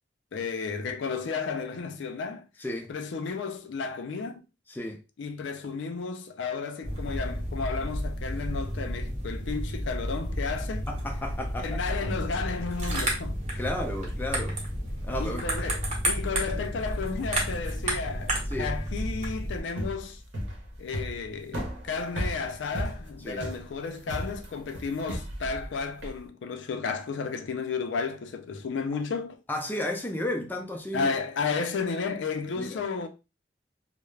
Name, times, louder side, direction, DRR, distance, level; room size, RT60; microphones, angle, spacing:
voice 1, 0.3-2.5 2.9-4.4 5.2-10.9 11.6-13.4 15.2-20.2 20.8-29.4 30.9-33.1, left 5 dB, 85° left, 0.4 m, -33 dB
voice 2, 4.7-5.0 10.9-11.7 13.5-14.6 15.0-15.5 18.5-18.7 23.2-23.4 29.5-31.1 32.5-32.9, left 1 dB, 10° left, 0.4 m, -33 dB
sound 1, 6.8-19.6, equal, 40° right, 0.8 m, -31 dB
sound 2, 19.6-26.2, equal, 75° right, 0.8 m, -35 dB
2.3 x 2.0 x 3.1 m
head